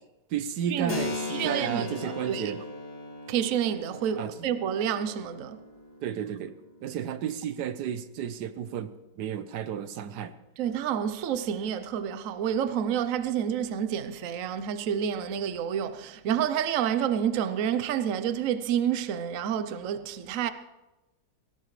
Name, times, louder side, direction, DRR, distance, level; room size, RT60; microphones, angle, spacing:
voice 1, 0.3-2.6 4.2-4.5 6.0-10.3, right 9 dB, 80° right, 1.3 m, -33 dB
Keyboard (musical), 0.9-8.3, left 3 dB, 70° left, 2.6 m, -39 dB
voice 2, 1.3-2.5 3.3-5.6 10.6-20.5, right 9 dB, 60° right, 1.0 m, -29 dB
19.0 x 17.5 x 3.2 m
omnidirectional pair, 1.7 m